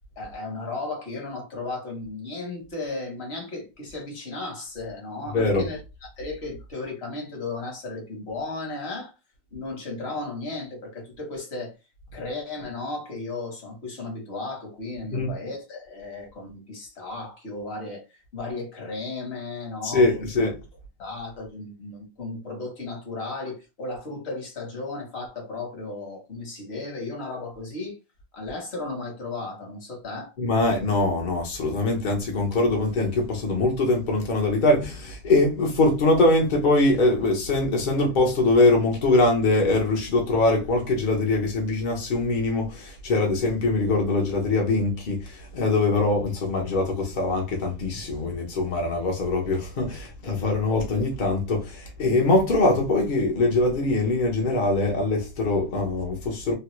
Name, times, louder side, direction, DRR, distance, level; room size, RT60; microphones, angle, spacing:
voice 1, 0.2-9.1 9.5-11.8 12.1-18.0 18.3-20.3 21.0-28.0 28.3-30.3, left 3 dB, 40° left, 1.0 m, -35 dB
voice 2, 5.3-5.7 15.1-15.3 19.8-20.6 30.4-56.5, left 2 dB, 70° left, 0.4 m, -23 dB
3.1 x 2.3 x 3.0 m
omnidirectional pair, 2.1 m